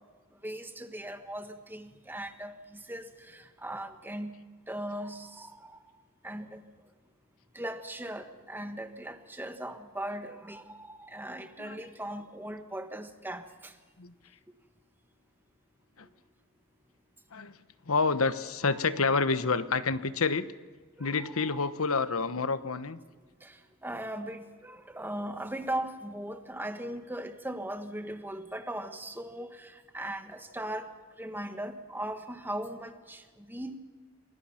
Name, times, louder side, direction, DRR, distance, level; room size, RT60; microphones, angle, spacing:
voice 1, 0.4-2.5 2.9-4.4 4.7-5.8 6.2-6.6 7.5-13.7 18.7-18.8 21.0-21.6 23.4-23.5 23.8-30.9 31.2-33.2 33.5-33.8, right 1 dB, 10° right, 7 dB, 1.5 m, -38 dB
voice 2, 17.9-20.4 21.0-23.0, left 4 dB, 70° left, 13 dB, 1.1 m, -28 dB
27.5 x 20.5 x 5.8 m, 1.4 s
head